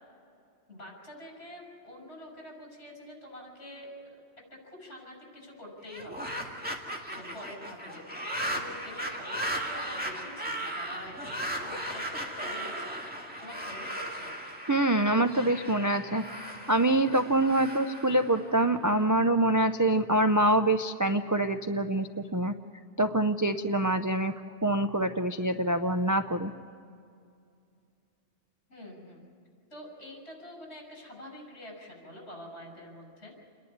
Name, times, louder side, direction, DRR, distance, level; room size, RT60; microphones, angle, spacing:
voice 1, 0.7-4.2 4.5-6.3 7.1-13.0 13.4-14.3 28.7-29.2 29.7-33.3, left 1 dB, 60° left, 0 dB, 6.5 m, -46 dB
sound 1, 5.8-19.0, right 1 dB, 10° right, 2.0 m, -37 dB
voice 2, 14.7-22.5 23.0-24.3 24.6-26.5, right 1 dB, 30° right, 7 dB, 0.3 m, -25 dB
28.5 x 11.0 x 9.5 m, 2.5 s
omnidirectional pair, 1.2 m